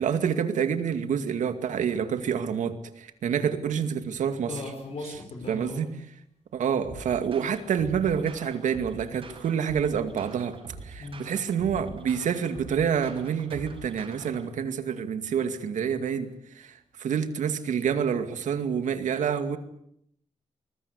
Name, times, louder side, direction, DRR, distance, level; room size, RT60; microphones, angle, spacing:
voice 1, 0.0-4.5 5.5-5.9 6.5-10.6 10.8-19.6, right 7 dB, 85° right, 2.2 m, -28 dB
voice 2, 4.5-5.9 11.0-11.3, left 2 dB, 55° left, 5.3 m, -37 dB
sound 1, 6.8-14.4, right 3 dB, 45° right, 6.5 m, -44 dB
24.5 x 21.0 x 8.4 m
wide cardioid pair, 155°, 12 cm